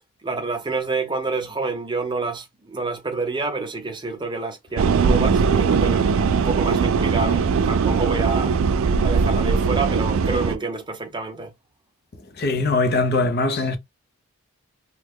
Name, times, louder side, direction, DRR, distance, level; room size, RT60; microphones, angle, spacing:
voice 1, 0.2-8.5 9.0-11.5, right 3 dB, 20° right, 0.6 m, -28 dB
sound 1, 4.8-10.6, right 5 dB, 65° right, 0.4 m, -20 dB
voice 2, 12.4-13.8, left 3 dB, 45° left, 0.6 m, -21 dB
3.0 x 2.2 x 3.5 m
head